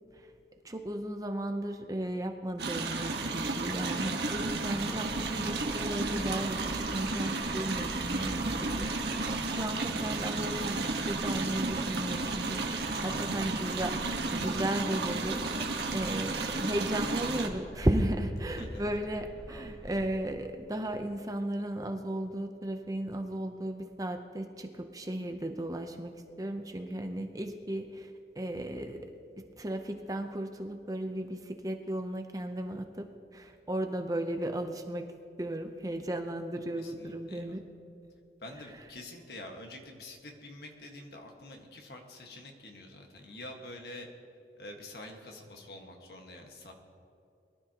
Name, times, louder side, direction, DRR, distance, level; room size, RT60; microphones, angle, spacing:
voice 1, 0.6-15.4 15.9-28.1 28.4-35.1 35.4-37.6, right 1 dB, 20° right, 5 dB, 0.6 m, -35 dB
sound 1, 2.6-17.5, right 3 dB, 70° right, 1.3 m, -33 dB
sound 2, 4.3-20.2, equal, 5° left, 1.0 m, -47 dB
voice 2, 36.8-37.6 38.4-44.1 44.6-46.7, left 1 dB, 60° left, 2 dB, 1.6 m, -47 dB
22.0 x 12.5 x 2.9 m, 2.6 s
head